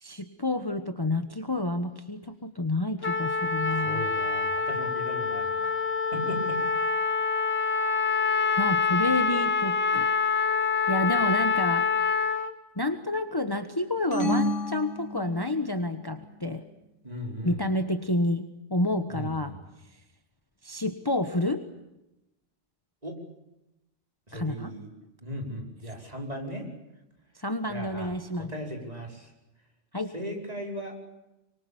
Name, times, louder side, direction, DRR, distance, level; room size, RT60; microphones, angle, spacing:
voice 1, 0.0-4.0 8.6-10.1 10.9-11.8 12.8-16.6 17.4-19.5 20.6-21.6 24.3-24.7 27.3-28.5 29.9-30.1, left 1 dB, 20° left, 8 dB, 1.3 m, -29 dB
Trumpet, 3.0-12.5, left 5 dB, 55° left, 2.1 m, -26 dB
voice 2, 3.7-5.7 6.1-6.6 17.0-17.6 19.1-19.6 23.0-23.2 24.3-24.9 25.2-26.7 27.7-29.3 30.1-30.9, equal, 35° right, 1 dB, 5.4 m, -37 dB
sound 1, 14.1-15.8, equal, 90° left, 3.7 m, -29 dB
25.0 x 24.5 x 8.6 m, 0.92 s
omnidirectional pair, 1.2 m